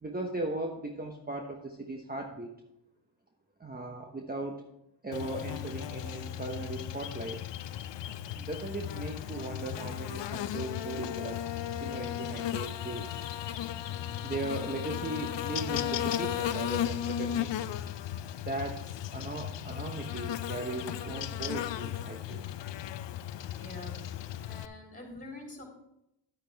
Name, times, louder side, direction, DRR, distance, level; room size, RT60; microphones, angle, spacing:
voice 1, 0.0-2.6 3.6-4.6 5.0-7.4 8.3-13.2 14.2-17.7 18.4-18.8 19.1-22.5, right 2 dB, 20° right, 1 dB, 1.2 m, -38 dB
Buzz, 5.1-24.7, left 10 dB, 65° left, 0.6 m, -35 dB
voice 2, 23.6-23.9 24.4-25.6, left 2 dB, 15° left, 0 dB, 3.5 m, -45 dB
10.5 x 8.7 x 3.5 m, 0.83 s
cardioid pair, 70°, 48 cm